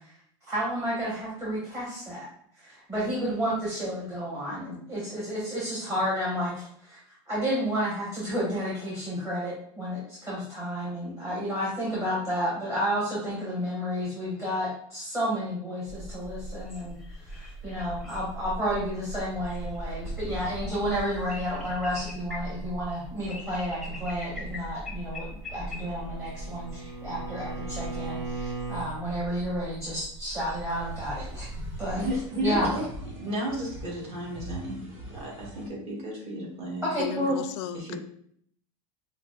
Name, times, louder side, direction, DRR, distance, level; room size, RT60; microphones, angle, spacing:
voice 1, 0.5-2.2 2.6-7.0 7.3-17.0 17.2-31.5 31.8-32.0 32.4-32.7 36.8-37.4, equal, 15° right, 1.2 m, -31 dB
sound 1, 15.9-32.2, equal, ahead, 0.7 m, -39 dB
Bowed string instrument, 25.5-28.9, right 4 dB, 75° right, 1.1 m, -38 dB
sound 2, 30.7-35.7, right 1 dB, 60° right, 1.3 m, -42 dB
voice 2, 31.9-36.9 37.7-38.0, equal, 40° right, 1.3 m, -33 dB
voice 3, 37.0-38.0, left 9 dB, 60° left, 0.4 m, -35 dB
5.5 x 2.1 x 2.4 m
supercardioid pair, 125°, 16 cm